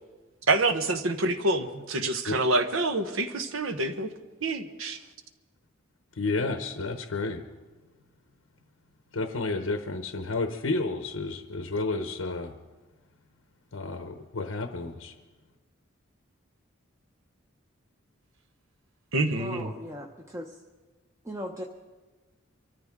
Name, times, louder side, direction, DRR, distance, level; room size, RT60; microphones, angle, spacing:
voice 1, 0.5-4.1 4.4-5.0 19.1-19.7, right 2 dB, 80° right, 8 dB, 1.1 m, -27 dB
voice 2, 6.1-7.5 9.1-12.5 13.7-15.2, left 3 dB, 90° left, 7 dB, 0.9 m, -31 dB
voice 3, 19.4-20.5 21.2-21.6, equal, 15° right, 1 dB, 0.7 m, -38 dB
24.5 x 13.5 x 3.7 m, 1.3 s
head